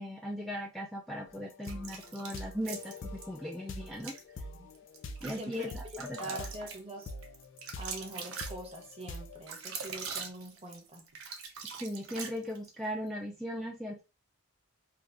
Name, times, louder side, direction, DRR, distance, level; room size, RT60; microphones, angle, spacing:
voice 1, 0.0-4.1 5.2-6.4 11.8-14.0, equal, ahead, 0.4 m, -38 dB
sound 1, 1.3-6.7 7.1-9.4, left 2 dB, 65° left, 0.5 m, -45 dB
sound 2, 1.6-3.3 3.9-4.2 4.7-12.8, right 5 dB, 80° right, 0.7 m, -43 dB
voice 2, 5.2-5.7 6.2-7.1 7.8-11.0, right 1 dB, 30° right, 0.8 m, -44 dB
2.7 x 2.4 x 3.4 m
head